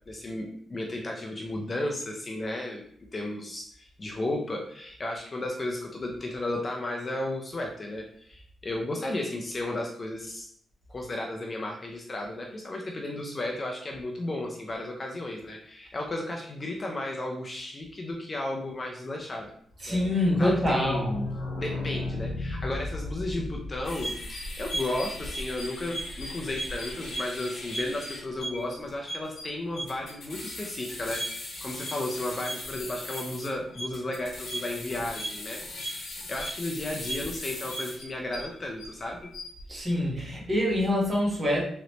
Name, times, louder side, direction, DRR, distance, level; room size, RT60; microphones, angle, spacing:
voice 1, 0.1-2.8 3.1-10.5 10.9-19.5 19.9-21.1 21.6-39.3, left 1 dB, 25° left, 0 dB, 0.5 m, -34 dB
voice 2, 19.8-21.2 39.7-41.6, left 1 dB, 25° right, -4 dB, 1.3 m, -25 dB
sound 1, 20.0-25.6 25.9-26.0 26.2-26.3 26.5-26.6, left 2 dB, 85° left, 0.8 m, -35 dB
sound 2, 23.8-38.9 39.2-39.6, equal, 55° left, 1.1 m, -37 dB
3.9 x 3.1 x 3.0 m, 0.63 s
wide cardioid pair, 150°, 0 cm